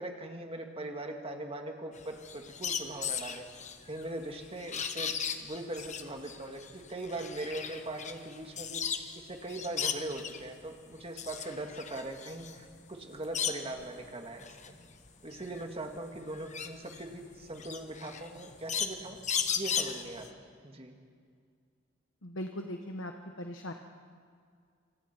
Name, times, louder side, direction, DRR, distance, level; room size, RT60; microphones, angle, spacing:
voice 1, 0.0-3.4 3.9-14.8 15.2-20.9, right 1 dB, 30° right, 3 dB, 2.1 m, -41 dB
sound 1, 2.0-9.2 9.5-10.5 10.9-13.9 14.3-20.3, left 7 dB, 35° left, 1.2 m, -36 dB
voice 2, 22.2-23.1 23.4-23.7, left 1 dB, 65° left, 4 dB, 1.3 m, -39 dB
28.0 x 26.0 x 4.5 m, 2.1 s
head